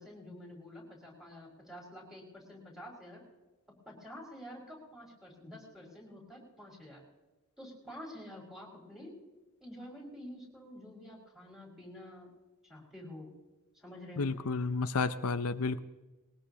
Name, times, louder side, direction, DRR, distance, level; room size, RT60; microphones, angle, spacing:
voice 1, 0.0-3.2 3.9-7.0 7.6-9.1 9.6-12.3 12.7-13.3 13.7-14.4, left 1 dB, ahead, -3 dB, 5.4 m, -48 dB
voice 2, 14.2-15.8, left 4 dB, 75° left, 10 dB, 0.6 m, -31 dB
21.0 x 19.0 x 2.9 m, 1.1 s
head